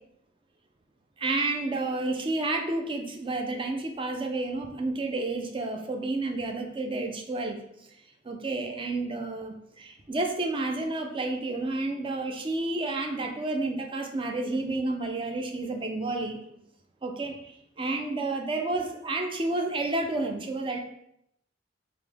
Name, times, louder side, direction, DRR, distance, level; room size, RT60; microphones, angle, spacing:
voice 1, 1.2-7.6 8.2-16.4 17.0-20.8, right 2 dB, 30° right, 4 dB, 0.5 m, -30 dB
3.9 x 3.0 x 3.4 m, 0.77 s
head